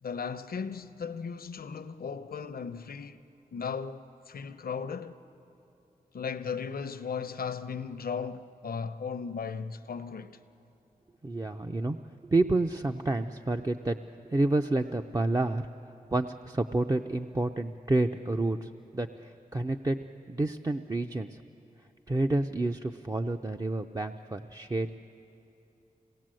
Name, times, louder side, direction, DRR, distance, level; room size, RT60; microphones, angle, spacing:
voice 1, 0.0-3.2 3.5-5.2 6.1-10.4, left 6 dB, 75° left, 0.8 m, -36 dB
voice 2, 11.2-12.0 12.2-14.0 14.3-15.6 16.1-20.0 20.3-21.3 22.1-24.9, right 2 dB, 25° right, 0.5 m, -29 dB
26.0 x 18.5 x 7.6 m
cardioid pair, 60°, 15 cm